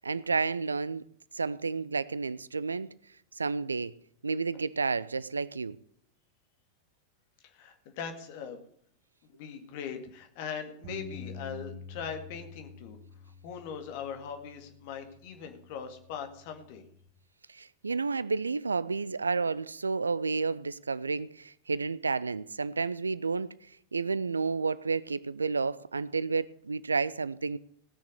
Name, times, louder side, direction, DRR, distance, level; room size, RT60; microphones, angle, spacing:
voice 1, 0.0-1.0 1.3-2.9 3.4-3.9 4.2-5.8 17.5-23.5 23.9-27.6, right 4 dB, 75° right, 0.4 m, -31 dB
voice 2, 7.4-8.6 9.3-13.0 13.4-16.8, left 7 dB, 50° left, 2.0 m, -40 dB
Bass guitar, 10.8-17.1, left 3 dB, 45° right, 2.2 m, -48 dB
18.0 x 6.5 x 6.5 m
figure-of-eight pair, 90°, 0 cm